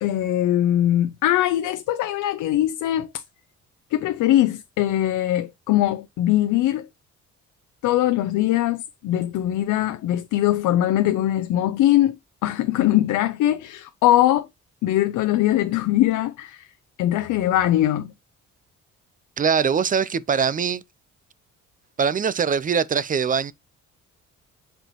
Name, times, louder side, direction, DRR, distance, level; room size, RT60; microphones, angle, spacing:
voice 1, 0.0-3.2 3.9-6.9 7.8-14.5 14.8-16.7 17.0-18.1, left 13 dB, 80° left, 0.6 m, -21 dB
voice 2, 19.4-20.8 22.0-23.5, right 6 dB, 25° right, 0.5 m, -22 dB
7.8 x 4.5 x 3.0 m
cardioid pair, 90°, 30 cm